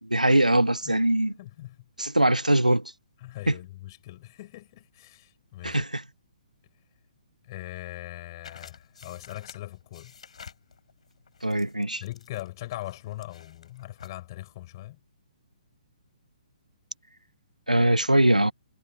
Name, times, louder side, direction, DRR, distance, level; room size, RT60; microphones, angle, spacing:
voice 1, 0.0-1.3 2.0-2.9 3.5-3.6 5.6-6.0 11.4-12.0 17.7-18.5, right 1 dB, 90° right, 1.3 m, -22 dB
voice 2, 1.4-1.8 3.2-5.8 7.4-10.1 12.0-15.0, left 16 dB, 35° left, 5.7 m, -40 dB
sound 1, 8.4-14.2, left 6 dB, 60° left, 6.5 m, -51 dB
figure-of-eight pair, 130°, 4 cm